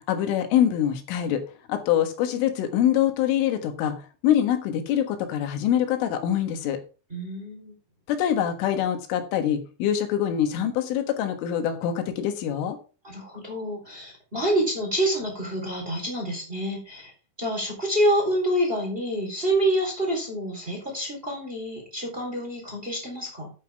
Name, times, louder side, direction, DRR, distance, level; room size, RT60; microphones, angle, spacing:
voice 1, 0.1-1.4 1.7-4.0 4.2-6.8 8.1-12.8, left 10 dB, 90° left, 7 dB, 4.0 m, -24 dB
voice 2, 7.1-7.7 13.0-17.1 17.4-23.5, right 1 dB, 15° right, -1 dB, 3.4 m, -27 dB
11.0 x 8.8 x 3.5 m, 0.33 s
omnidirectional pair, 5.5 m